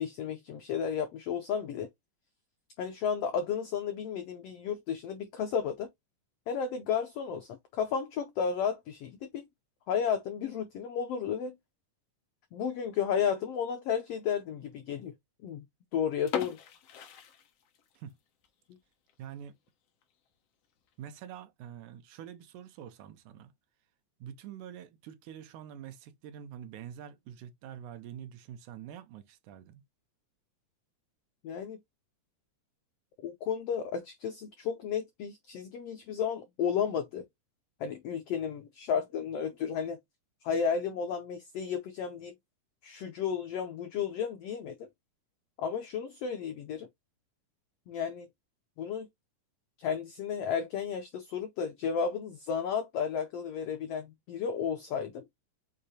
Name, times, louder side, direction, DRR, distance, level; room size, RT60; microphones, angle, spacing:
voice 1, 0.0-1.9 2.8-5.9 6.5-9.5 9.9-11.6 12.5-15.1 15.4-15.7 15.9-16.6 16.9-17.0 18.7-18.8 31.4-31.8 33.2-37.2 37.8-40.0 40.4-42.3 42.8-44.8 45.6-46.9 47.9-48.3 48.8-49.1 49.8-55.2, left 7 dB, 85° left, 1.3 m, -33 dB
sound 1, 16.3-18.1 18.4-18.5 19.1-19.3 19.7-19.8 20.0-20.1 20.9-21.2, left 8 dB, 65° left, 1.7 m, -39 dB
voice 2, 19.2-19.6 21.0-23.5 24.2-29.8, right 9 dB, 75° right, 2.1 m, -46 dB
6.5 x 2.8 x 2.7 m
omnidirectional pair, 3.7 m